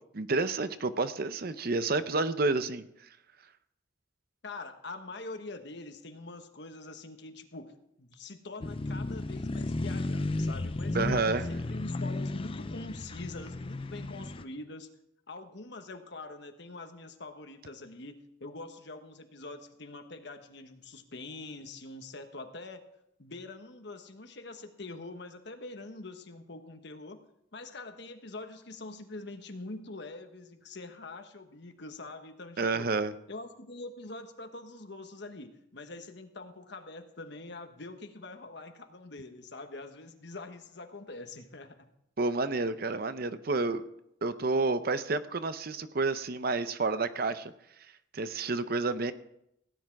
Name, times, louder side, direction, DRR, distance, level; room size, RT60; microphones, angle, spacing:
voice 1, 0.1-2.8 10.9-11.5 32.6-33.1 42.2-43.8 44.2-47.5 48.1-49.1, right 3 dB, 50° right, 12 dB, 0.7 m, -29 dB
voice 2, 4.4-7.7 8.0-14.9 15.3-22.8 23.2-27.2 27.5-32.9 33.3-41.7, left 2 dB, 60° left, 7 dB, 1.3 m, -44 dB
sound 1, 8.6-14.4, left 2 dB, 30° left, 0.5 m, -34 dB
17.0 x 9.9 x 4.7 m, 0.78 s
head